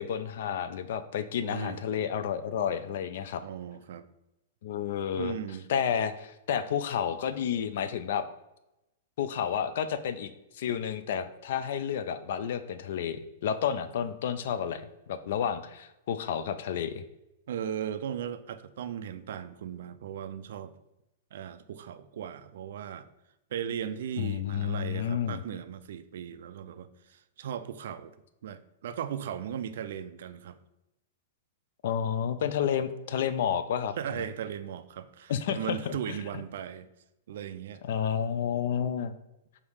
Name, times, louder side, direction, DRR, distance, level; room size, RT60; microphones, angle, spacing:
voice 1, 0.0-3.4 4.6-5.3 5.7-8.2 9.2-10.3 10.5-17.0 24.2-25.4 31.8-33.9 35.3-36.2 37.8-39.1, left 8 dB, 60° left, 12 dB, 0.4 m, -30 dB
voice 2, 1.4-1.8 3.4-4.0 5.2-5.7 17.5-20.8 21.3-23.1 23.5-28.1 28.4-30.6 34.0-36.9 37.3-37.8, right 9 dB, 65° right, 12 dB, 0.3 m, -37 dB
4.8 x 2.7 x 3.4 m, 0.92 s
hypercardioid pair, 155°, 0 cm